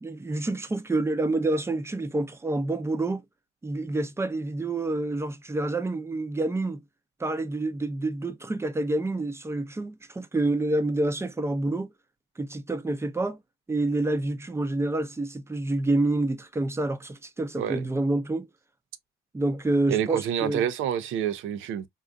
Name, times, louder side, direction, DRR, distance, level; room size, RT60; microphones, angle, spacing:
voice 1, 0.0-3.2 3.6-6.8 7.2-11.9 12.4-13.4 13.7-18.5 19.3-20.6, right 2 dB, 15° right, 0.5 m, -28 dB
voice 2, 19.9-21.9, right 9 dB, 85° right, 0.5 m, -28 dB
3.8 x 2.4 x 2.2 m
cardioid pair, 90°, 20 cm